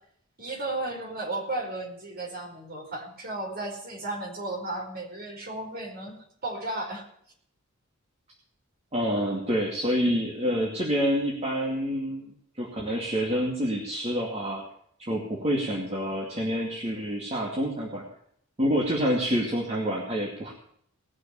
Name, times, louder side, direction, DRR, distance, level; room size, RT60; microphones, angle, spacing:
voice 1, 0.4-7.1, right 2 dB, 45° right, -1 dB, 4.7 m, -34 dB
voice 2, 8.9-12.3 12.6-14.6 15.0-18.0 18.6-20.5, equal, 30° right, -3 dB, 2.4 m, -27 dB
19.5 x 6.6 x 6.9 m, 0.67 s
head